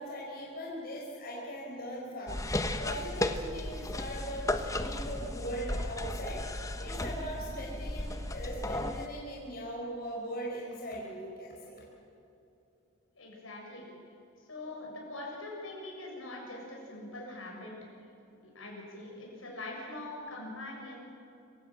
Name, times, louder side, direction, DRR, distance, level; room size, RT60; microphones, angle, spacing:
voice 1, 0.0-2.4 2.8-6.4 6.8-11.8, equal, 45° left, -3 dB, 4.6 m, -40 dB
sound 1, 2.3-9.1, left 1 dB, 15° left, 1.0 m, -35 dB
voice 2, 13.1-13.8 14.5-17.7 18.4-21.0, left 2 dB, 80° left, -1 dB, 6.8 m, -43 dB
26.0 x 16.0 x 7.5 m, 2.8 s
head